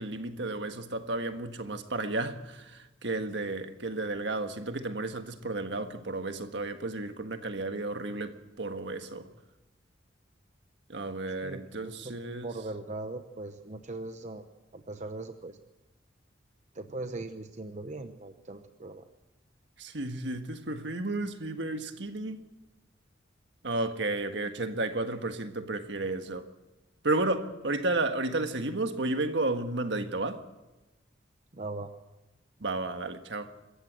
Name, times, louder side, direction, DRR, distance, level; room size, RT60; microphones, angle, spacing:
voice 1, 0.0-9.3 10.9-12.5 19.8-22.4 23.6-26.5 27.0-30.4 32.6-33.5, right 2 dB, 65° right, 1.6 m, -32 dB
voice 2, 11.4-12.2 12.4-14.4 14.7-15.6 16.7-19.0 31.5-31.9, right 2 dB, 40° right, 0.9 m, -40 dB
25.0 x 14.5 x 7.6 m
head